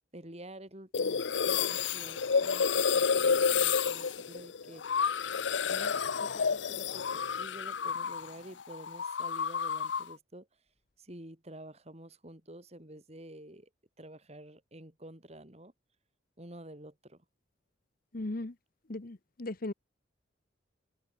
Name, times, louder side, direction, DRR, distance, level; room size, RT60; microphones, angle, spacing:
voice 1, 0.1-5.0 5.7-10.5 11.0-13.7 14.0-15.7 16.4-17.2, right 1 dB, 35° right, 3.7 m, -49 dB
sound 1, 0.9-8.3 8.6-10.1, left 6 dB, 70° left, 0.7 m, -30 dB
voice 2, 18.1-18.5 18.9-19.7, left 2 dB, 50° left, 1.0 m, -37 dB
open air
head